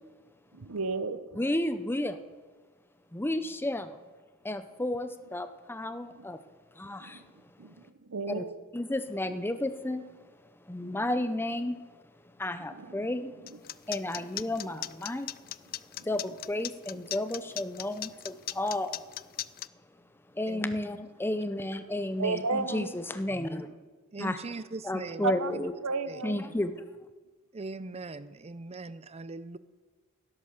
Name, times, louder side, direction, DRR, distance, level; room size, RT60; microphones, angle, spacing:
voice 1, 0.5-1.4 6.1-6.2 7.0-7.3 7.6-8.6 9.2-9.4 12.7-13.2 13.5-13.6 14.2-14.6 16.3-16.4 22.2-23.0 23.6-23.7 25.2-26.4, right 4 dB, 75° right, 12 dB, 0.9 m, -34 dB
voice 2, 1.4-2.2 3.1-4.0 4.4-6.4 6.7-7.2 8.3-8.4 8.7-10.0 10.7-11.8 12.4-15.3 15.7-19.0 20.3-23.7 24.2-24.4 24.8-25.7 26.2-26.7, left 1 dB, 10° left, 10 dB, 0.7 m, -32 dB
sound 1, 13.5-19.7, left 14 dB, 45° left, 0.4 m, -37 dB
voice 3, 24.1-25.3 26.1-26.2 27.5-29.6, right 3 dB, 30° right, 15 dB, 0.6 m, -40 dB
17.0 x 10.5 x 6.7 m, 1.4 s
head